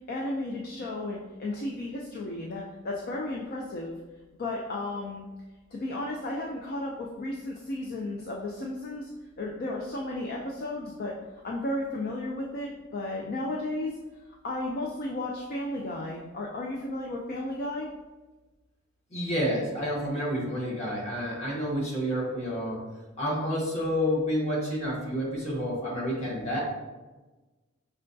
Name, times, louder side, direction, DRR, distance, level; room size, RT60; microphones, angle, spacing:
voice 1, 0.1-4.0 4.4-5.3 5.7-9.1 9.4-14.0 14.4-17.9, left 1 dB, 50° left, -1 dB, 0.4 m, -34 dB
voice 2, 19.1-22.8 23.2-26.6, equal, 35° left, -5 dB, 1.1 m, -29 dB
5.4 x 2.2 x 2.6 m, 1.2 s
head